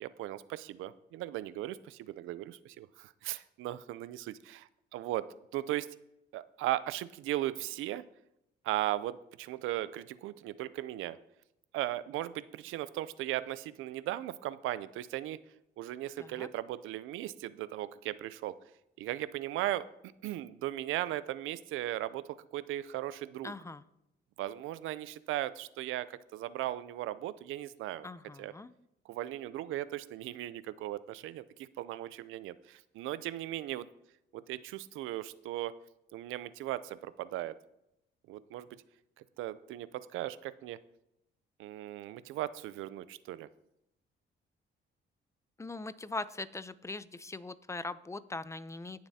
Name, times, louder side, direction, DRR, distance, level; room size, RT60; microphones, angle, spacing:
voice 1, 0.0-5.9 6.3-8.0 8.6-11.2 11.7-15.4 15.8-18.5 19.0-19.9 20.2-23.5 24.4-26.1 26.3-28.1 28.4-28.5 29.1-31.4 31.8-33.9 34.3-35.7 36.1-37.5 38.3-38.7 39.4-40.8 41.6-43.5, right 14 dB, 90° right, 16 dB, 0.5 m, -37 dB
voice 2, 16.2-16.5 23.4-23.8 28.0-28.7 45.6-49.1, left 3 dB, 15° left, 16 dB, 0.5 m, -41 dB
18.5 x 7.1 x 2.8 m, 0.83 s
cardioid pair, 90°, 20 cm